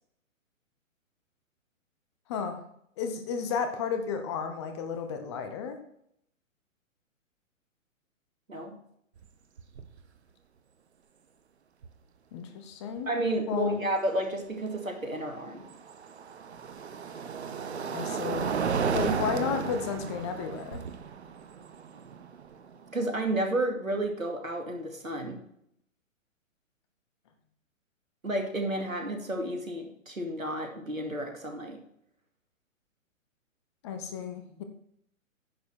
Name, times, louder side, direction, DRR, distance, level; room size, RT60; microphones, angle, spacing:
voice 1, 2.3-2.6 3.0-5.8 12.3-13.1 13.5-13.8 17.9-18.5 18.9-20.8 33.8-34.6, left 6 dB, 20° left, 7 dB, 0.8 m, -33 dB
sound 1, 9.2-9.3 9.6-10.0 11.8-11.9 14.9-23.0, right 6 dB, 55° right, 1.0 m, -34 dB
voice 2, 13.1-15.7 18.7-19.1 22.9-25.4 28.2-31.8, right 1 dB, 80° right, 4 dB, 2.4 m, -31 dB
10.0 x 6.8 x 4.4 m, 0.72 s
figure-of-eight pair, 125°, 40 cm